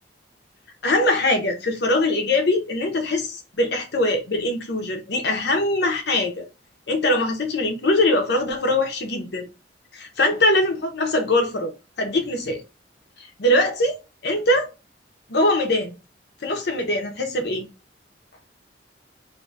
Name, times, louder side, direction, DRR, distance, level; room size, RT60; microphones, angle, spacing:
voice 1, 0.8-6.5 6.9-9.5 9.9-11.7 12.0-12.6 13.2-14.7 15.3-15.9 16.4-17.7, left 1 dB, 65° left, 0.7 m, -22 dB
2.6 x 2.4 x 3.9 m
head